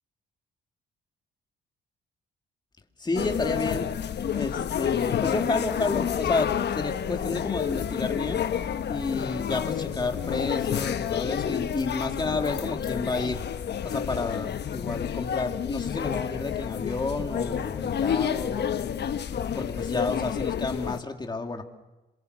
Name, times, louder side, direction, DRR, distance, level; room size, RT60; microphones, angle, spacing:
voice 1, 3.0-3.9 4.3-8.4 8.9-13.4 13.8-18.7 19.3-21.6, left 3 dB, 20° left, 4 dB, 2.5 m, -31 dB
sound 1, 3.2-21.0, left 8 dB, 55° left, 1.1 m, -29 dB
26.5 x 23.5 x 7.9 m, 1.1 s
cardioid pair, 90°, 20 cm